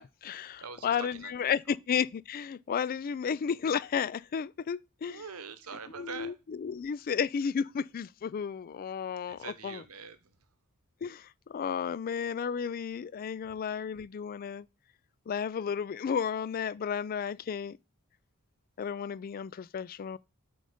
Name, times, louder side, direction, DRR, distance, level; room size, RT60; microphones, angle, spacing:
voice 1, 0.0-5.2 6.0-9.8 11.0-14.7 15.3-17.8 18.8-20.2, left 7 dB, 40° left, 0.3 m, -33 dB
voice 2, 0.6-1.3 1.7-1.8 5.1-6.4 9.3-10.4, right 6 dB, 70° right, 0.9 m, -44 dB
7.8 x 3.9 x 5.0 m
head